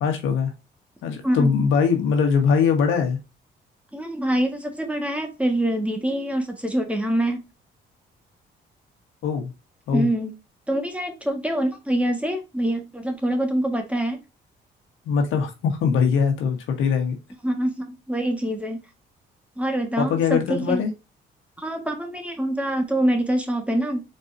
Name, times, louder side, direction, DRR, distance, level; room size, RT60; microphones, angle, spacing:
voice 1, 0.0-0.5 1.0-3.2 9.2-9.5 9.9-10.1 15.0-17.2 20.0-20.9, left 6 dB, 90° left, 1.4 m, -21 dB
voice 2, 3.9-7.5 9.9-10.3 10.7-14.2 17.4-18.8 19.6-20.8 21.6-24.0, right 1 dB, 5° right, 1.5 m, -25 dB
4.6 x 4.0 x 2.6 m
cardioid pair, 90°, 20 cm